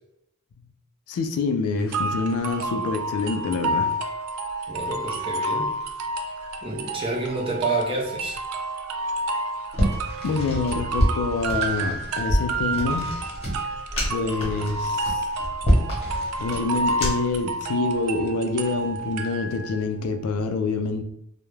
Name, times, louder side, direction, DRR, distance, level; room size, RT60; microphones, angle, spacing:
voice 1, 1.1-4.0 10.2-13.1 14.1-15.2 16.4-21.0, left 3 dB, 75° left, 7 dB, 0.3 m, -26 dB
sound 1, 1.9-19.8, right 2 dB, 85° right, 0.3 m, -30 dB
voice 2, 4.7-5.7 6.6-8.4, right 3 dB, 25° right, -1 dB, 0.5 m, -29 dB
sound 2, 9.7-17.4, equal, 30° left, 0.8 m, -26 dB
2.3 x 2.0 x 3.0 m, 0.77 s
head